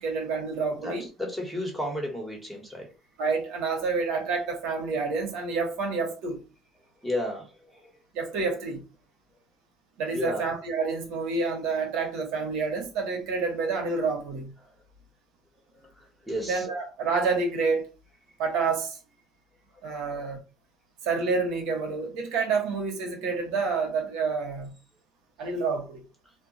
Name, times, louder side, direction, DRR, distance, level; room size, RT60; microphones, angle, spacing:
voice 1, 0.0-1.1 3.2-6.4 8.1-8.8 10.0-14.5 16.5-17.8 18.4-19.0 19.8-20.4 21.0-24.7 25.4-26.0, right 4 dB, 85° right, 0.9 m, -28 dB
voice 2, 0.8-2.9 7.0-7.9 10.1-10.4 14.6-14.7 15.7-16.7 19.7-19.8, left 1 dB, ahead, 1.1 m, -33 dB
2.2 x 2.1 x 3.8 m
cardioid pair, 120°, 0 cm